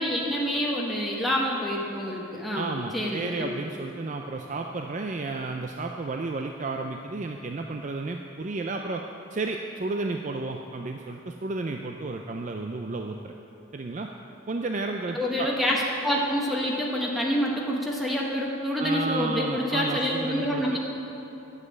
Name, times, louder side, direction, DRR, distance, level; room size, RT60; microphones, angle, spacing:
voice 1, 0.0-3.5 15.1-20.8, equal, ahead, -3 dB, 1.1 m, -27 dB
voice 2, 2.5-9.0 9.3-13.3 13.7-14.1 14.5-15.5 18.8-20.8, right 3 dB, 35° right, 3 dB, 0.4 m, -32 dB
9.7 x 7.4 x 8.7 m, 2.9 s
head